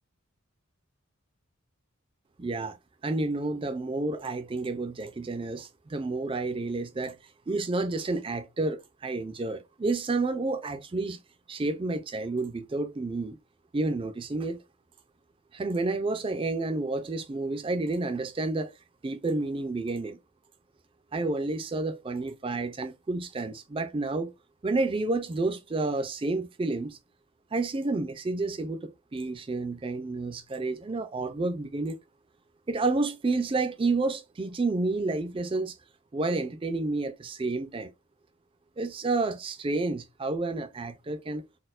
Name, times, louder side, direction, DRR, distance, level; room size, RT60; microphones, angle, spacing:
voice 1, 2.4-2.8 3.0-7.2 7.5-11.2 11.5-13.4 13.7-14.6 15.5-18.7 19.0-20.2 21.1-24.3 24.6-27.0 27.5-32.0 32.7-35.8 36.1-37.9 38.8-41.5, right 3 dB, 25° right, 0.3 m, -30 dB
4.1 x 2.1 x 2.4 m
head